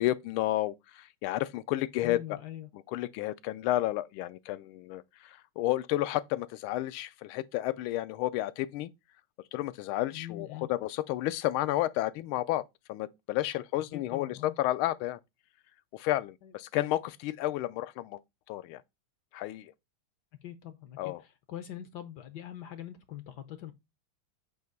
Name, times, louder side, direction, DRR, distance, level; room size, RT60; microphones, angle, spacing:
voice 1, 0.0-2.4 2.7-8.9 9.5-12.6 12.9-15.2 15.9-18.2 18.5-18.8 19.3-19.7 21.0-21.2, left 15 dB, 85° left, 1.4 m, -31 dB
voice 2, 2.0-2.7 10.1-10.7 14.1-14.5 16.4-16.5 20.4-23.7, left 12 dB, 65° left, 1.1 m, -43 dB
8.0 x 2.8 x 5.2 m
omnidirectional pair, 2.3 m